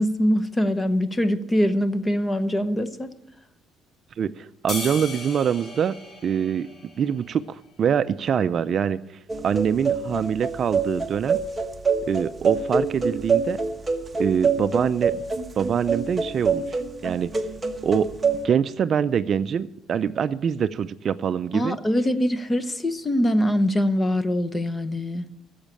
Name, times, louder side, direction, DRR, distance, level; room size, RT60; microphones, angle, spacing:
voice 1, 0.0-3.1 21.5-25.3, equal, 15° left, 13 dB, 0.9 m, -23 dB
voice 2, 4.2-5.9 6.2-6.7 7.0-9.0 9.4-11.4 12.1-13.6 14.2-15.2 15.6-17.3 17.8-18.1 18.4-21.8, right 8 dB, 45° right, 13 dB, 0.4 m, -24 dB
sound 1, 4.7-7.3, left 2 dB, 35° left, 2.7 m, -36 dB
sound 2, 9.3-18.4, right 5 dB, 15° right, 1.1 m, -25 dB
13.5 x 7.2 x 8.8 m, 0.85 s
cardioid pair, 130°, 0 cm